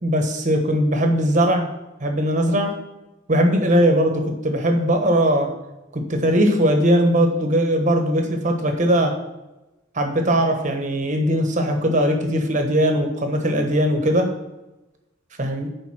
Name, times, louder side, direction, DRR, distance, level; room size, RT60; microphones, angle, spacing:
voice 1, 0.0-1.6 2.0-2.7 3.3-5.5 5.9-9.1 9.9-14.3 15.4-15.7, equal, 40° right, 4 dB, 1.2 m, -19 dB
7.6 x 5.2 x 6.0 m, 0.99 s
head